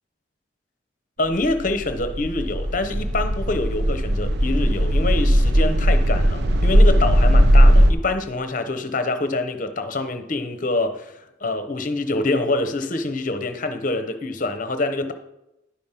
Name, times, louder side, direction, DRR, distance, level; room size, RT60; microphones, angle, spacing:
voice 1, 1.2-15.1, left 2 dB, 45° left, 8 dB, 0.9 m, -25 dB
sound 1, 1.3-7.9, equal, 60° right, 0.7 m, -17 dB
10.5 x 5.2 x 5.7 m, 0.88 s
head